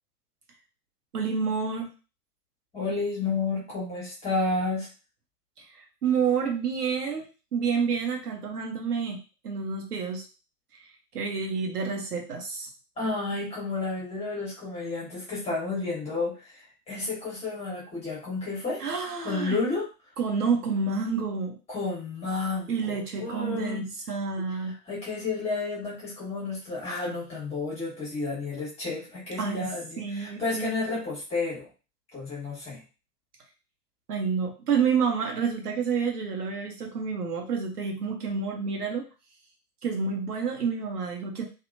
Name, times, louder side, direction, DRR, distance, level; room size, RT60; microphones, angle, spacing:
voice 1, 1.1-1.9 5.6-7.3 7.5-10.2 11.1-12.7 18.8-19.6 20.2-21.6 22.7-24.7 29.4-29.7 30.0-30.8 34.1-39.0 39.8-41.4, right 5 dB, 65° right, 2 dB, 0.9 m, -29 dB
voice 2, 2.7-4.9 13.0-18.8 19.2-19.9 21.7-23.9 24.6-31.7 32.1-32.8, left 3 dB, 15° left, -6 dB, 1.3 m, -31 dB
2.7 x 2.5 x 2.6 m, 0.32 s
figure-of-eight pair, 105°, 49 cm